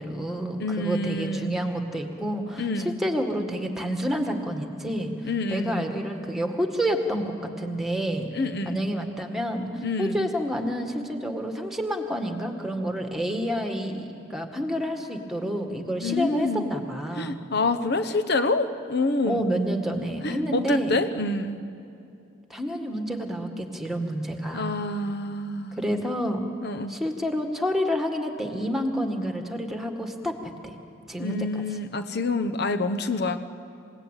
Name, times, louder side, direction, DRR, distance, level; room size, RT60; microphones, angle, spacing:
voice 1, 0.0-5.1 5.5-8.3 8.6-17.4 19.3-21.0 22.5-24.8 25.7-26.4 26.9-30.7 31.1-31.6, equal, ahead, 4 dB, 2.0 m, -29 dB
voice 2, 0.6-1.5 2.6-3.0 5.2-5.8 8.3-8.8 9.8-10.3 16.0-16.7 17.2-19.5 20.2-21.6 24.5-25.8 26.6-26.9 31.2-33.4, left 2 dB, 60° left, 8 dB, 1.0 m, -27 dB
28.0 x 18.0 x 9.2 m, 2.6 s
head